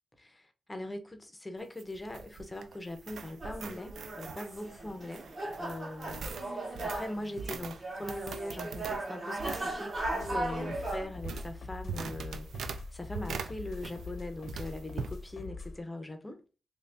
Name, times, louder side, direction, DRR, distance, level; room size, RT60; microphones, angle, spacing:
voice 1, 0.2-5.3 5.6-16.4, left 1 dB, 15° left, 0.5 m, -41 dB
sound 1, 1.6-14.2 14.5-15.2, right 5 dB, 85° right, 0.3 m, -43 dB
sound 2, 3.4-11.1, right 2 dB, 35° right, 1.1 m, -37 dB
sound 3, 10.2-15.8, left 3 dB, 70° left, 0.6 m, -43 dB
3.0 x 2.6 x 3.3 m
wide cardioid pair, 180°, 0 cm